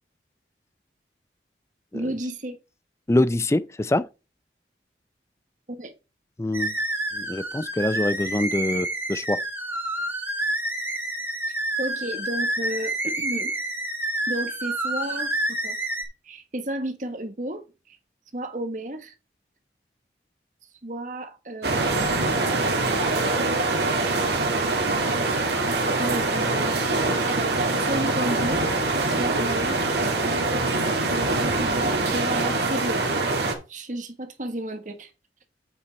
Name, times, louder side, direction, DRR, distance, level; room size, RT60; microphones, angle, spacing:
voice 1, 1.9-2.6 5.7-5.9 11.8-13.5 14.3-15.3 15.6-15.8 16.2-18.0 18.3-19.1 20.8-22.4 23.3-23.7 25.0-25.6 26.0-28.6 29.2-29.9 31.4-35.1, right 1 dB, 45° right, 1.5 m, -33 dB
voice 2, 3.1-4.1 6.4-6.7 7.1-9.4, left 1 dB, 15° left, 0.4 m, -24 dB
sound 1, 6.5-16.0, right 1 dB, 10° right, 2.4 m, -28 dB
sound 2, 21.6-33.5, right 2 dB, 65° right, 2.1 m, -24 dB
8.2 x 5.7 x 4.2 m
head